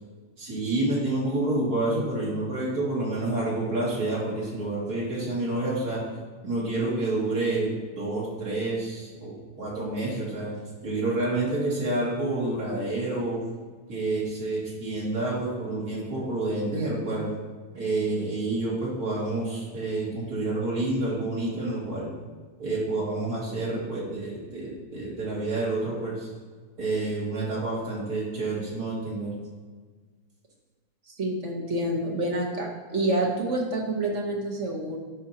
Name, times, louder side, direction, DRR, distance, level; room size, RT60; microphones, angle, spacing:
voice 1, 0.4-6.0 6.4-10.5 10.8-13.4 13.9-17.3 17.7-22.1 22.6-26.3 26.8-29.3, right 2 dB, 75° right, -5 dB, 2.6 m, -28 dB
voice 2, 31.1-35.0, right 1 dB, 50° right, -1 dB, 1.4 m, -28 dB
12.0 x 4.5 x 2.9 m, 1.4 s
omnidirectional pair, 1.7 m